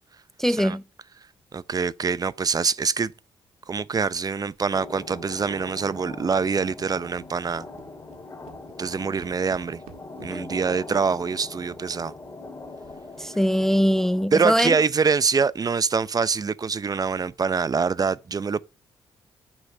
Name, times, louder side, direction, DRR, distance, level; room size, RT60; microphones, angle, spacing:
voice 1, 0.4-0.8 10.3-10.6 13.2-14.8, equal, 5° left, 0.4 m, -22 dB
sound 1, 1.2-1.3 1.8-3.7 4.0-13.6 13.8-13.9 14.4-14.5 15.0-15.5, right 8 dB, 90° right, 1.6 m, -55 dB
voice 2, 1.5-3.1 3.7-7.6 8.8-9.8 10.2-12.1 14.3-18.6, right 5 dB, 40° right, 0.7 m, -24 dB
sound 2, 4.7-14.3, left 3 dB, 25° left, 2.8 m, -41 dB
9.7 x 6.3 x 5.3 m
supercardioid pair, 50°, 10 cm